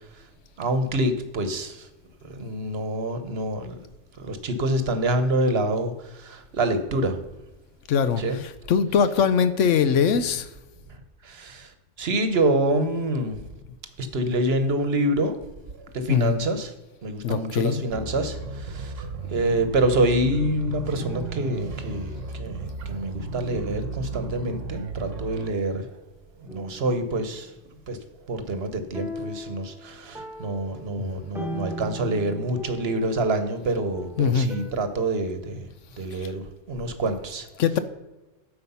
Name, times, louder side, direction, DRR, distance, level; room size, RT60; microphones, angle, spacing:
voice 1, 0.6-1.9 2.3-3.7 4.2-7.2 8.2-8.4 11.2-11.7 12.0-13.4 14.0-15.4 15.9-16.7 17.0-25.9 26.4-27.5 27.9-28.0 28.3-35.7 36.0-37.5, right 1 dB, 55° right, 9 dB, 1.2 m, -26 dB
voice 2, 7.9-10.5 16.1-16.4 17.2-17.8 31.0-31.2 34.2-34.5 36.2-36.3 36.8-36.9 37.6-37.8, left 7 dB, 80° left, 12 dB, 1.0 m, -22 dB
sound 1, 17.9-25.5, right 4 dB, 85° right, 1.3 m, -34 dB
sound 2, 21.0-22.8 23.7-24.0 25.1-25.9 26.5-27.7 28.9-34.7, equal, ahead, 1.0 m, -40 dB
9.6 x 6.7 x 5.5 m, 1.1 s
omnidirectional pair, 1.3 m